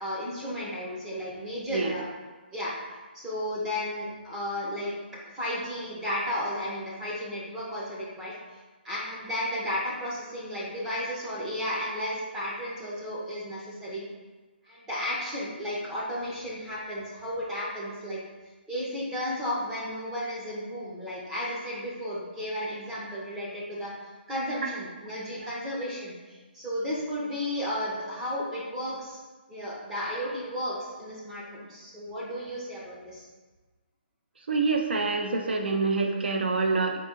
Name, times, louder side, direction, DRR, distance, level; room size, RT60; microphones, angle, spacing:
voice 1, 0.0-2.1 2.5-2.7 3.1-4.9 5.3-8.3 8.8-14.1 14.6-18.2 18.7-29.2 29.5-33.3, equal, 5° right, -7 dB, 0.5 m, -33 dB
voice 2, 34.5-37.0, right 4 dB, 70° right, 3 dB, 0.5 m, -26 dB
4.0 x 2.6 x 3.7 m, 1.3 s
hypercardioid pair, 175°, 6 cm